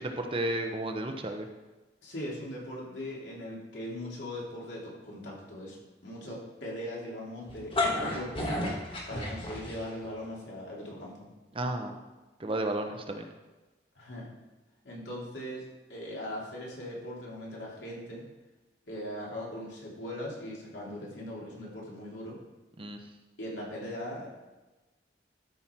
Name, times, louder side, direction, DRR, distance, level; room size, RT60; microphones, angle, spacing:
voice 1, 0.0-1.5 9.1-9.2 11.5-11.9 12.4-13.3 22.8-23.0, right 1 dB, 30° right, 4 dB, 0.8 m, -33 dB
voice 2, 2.0-8.5 9.1-11.3 13.9-14.3 14.8-18.2 18.9-22.4 23.4-24.3, left 1 dB, 80° left, -4 dB, 3.1 m, -40 dB
sound 1, 7.5-10.1, left 2 dB, 30° left, 1.5 m, -31 dB
12.5 x 5.8 x 4.6 m, 1.1 s
head